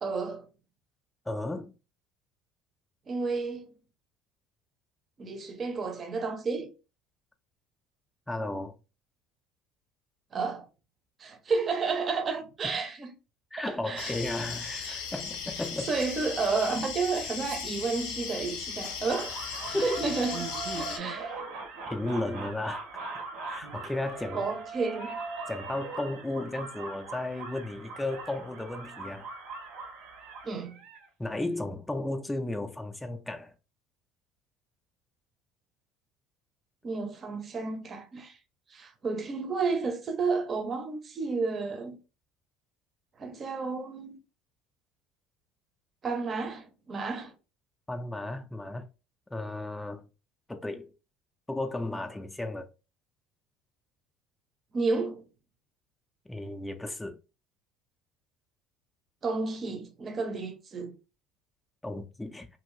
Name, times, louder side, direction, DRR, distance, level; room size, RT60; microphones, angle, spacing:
voice 1, 0.0-0.5 3.1-3.7 5.2-6.7 10.3-10.6 11.2-13.1 13.6-14.2 14.8-15.0 15.9-19.4 19.7-21.3 24.3-25.2 30.4-30.8 36.8-38.4 38.7-42.0 43.2-44.2 46.0-47.3 54.7-55.2 59.2-61.0, right 4 dB, 35° right, 0.6 m, -31 dB
voice 2, 1.3-1.7 8.3-8.8 13.5-16.0 19.7-20.0 21.9-22.8 23.5-24.5 25.5-29.3 31.2-33.5 47.9-48.9 49.3-50.1 50.5-50.9 51.5-52.6 56.3-57.2 61.8-62.5, left 2 dB, 10° left, 0.4 m, -34 dB
sound 1, 14.0-21.0, left 6 dB, 90° left, 0.6 m, -37 dB
sound 2, 19.1-31.1, right 3 dB, 80° right, 0.8 m, -40 dB
2.6 x 2.5 x 3.1 m
cardioid pair, 120°, 0 cm